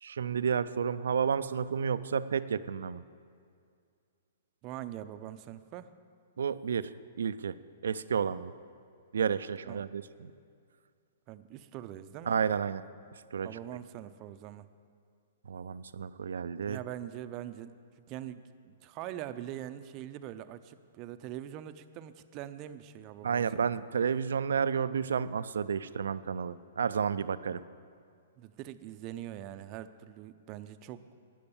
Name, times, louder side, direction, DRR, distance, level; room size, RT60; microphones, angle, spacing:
voice 1, 0.0-3.0 6.4-6.9 7.2-7.6 7.8-8.5 9.1-10.3 12.3-12.8 13.1-13.5 15.4-16.8 23.2-27.6, right 7 dB, 80° right, 15 dB, 0.4 m, -31 dB
voice 2, 4.6-5.9 9.7-9.9 11.3-12.4 13.4-14.7 16.7-23.7 28.4-31.1, right 12 dB, 35° right, 11 dB, 0.5 m, -43 dB
12.0 x 9.4 x 7.1 m, 2.3 s
hypercardioid pair, 140°, 0 cm